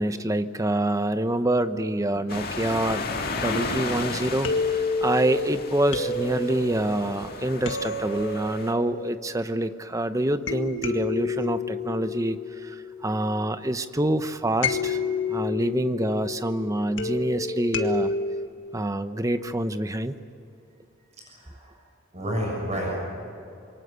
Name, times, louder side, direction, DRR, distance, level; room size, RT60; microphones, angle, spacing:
voice 1, 0.0-3.0 3.4-12.4 12.6-15.0 15.3-18.1 18.7-20.1, right 1 dB, 15° right, 10 dB, 0.9 m, -26 dB
sound 1, 2.3-8.7, left 3 dB, 50° left, 2.1 m, -34 dB
sound 2, 3.4-9.9 10.5-13.5 14.6-18.5, left 3 dB, 65° left, 1.8 m, -30 dB
voice 2, 21.2-21.7 22.1-23.1, equal, 35° right, -2 dB, 7.0 m, -30 dB
26.5 x 23.5 x 6.9 m, 2.6 s
head